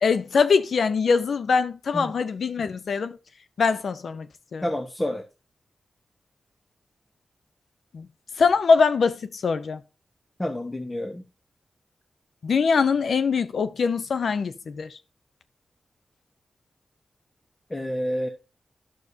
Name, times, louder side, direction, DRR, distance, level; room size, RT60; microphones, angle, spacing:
voice 1, 0.0-3.2 3.6-4.3 4.5-4.6 7.9-8.1 8.4-9.8 12.4-14.9, left 5 dB, 80° left, 0.6 m, -22 dB
voice 2, 4.6-5.2 10.4-11.2 17.7-18.3, left 1 dB, 20° left, 1.1 m, -29 dB
11.0 x 6.4 x 2.7 m
cardioid pair, 60°, 0 cm